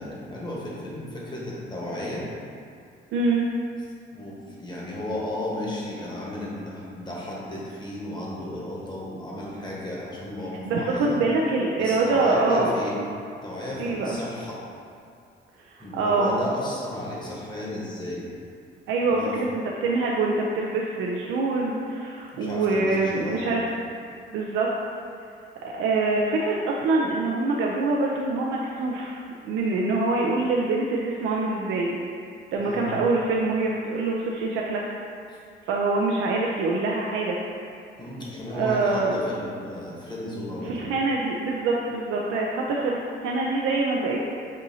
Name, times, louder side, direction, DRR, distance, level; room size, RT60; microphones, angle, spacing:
voice 1, 0.0-2.2 4.1-11.2 11.8-13.0 13.4-14.6 15.8-18.2 19.1-19.3 22.3-23.5 32.6-32.9 35.3-35.4 38.0-40.9, left 1 dB, 20° left, -5 dB, 1.2 m, -33 dB
voice 2, 3.1-3.4 10.6-12.7 13.8-14.2 15.7-16.4 18.9-23.7 24.3-24.7 25.6-31.9 32.5-34.8 35.7-37.4 38.5-39.2 40.7-44.2, right 3 dB, 85° right, -2 dB, 0.4 m, -25 dB
6.2 x 2.6 x 2.7 m, 2.3 s
cardioid pair, 90°, 20 cm